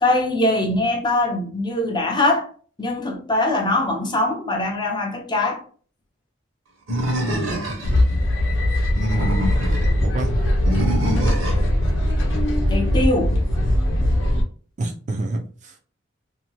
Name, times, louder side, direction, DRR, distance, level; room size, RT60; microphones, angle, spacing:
voice 1, 0.0-2.5 2.8-5.6 12.7-13.4, left 2 dB, 20° left, 0.5 m, -22 dB
Animal, 6.9-8.0 8.8-9.9 10.7-11.7, equal, 85° right, 1.0 m, -24 dB
sound 1, 7.8-14.4, left 1 dB, 70° left, 0.7 m, -20 dB
voice 2, 7.9-8.7 10.0-10.3 14.8-15.8, right 2 dB, 35° right, 0.4 m, -29 dB
2.7 x 2.2 x 2.9 m
head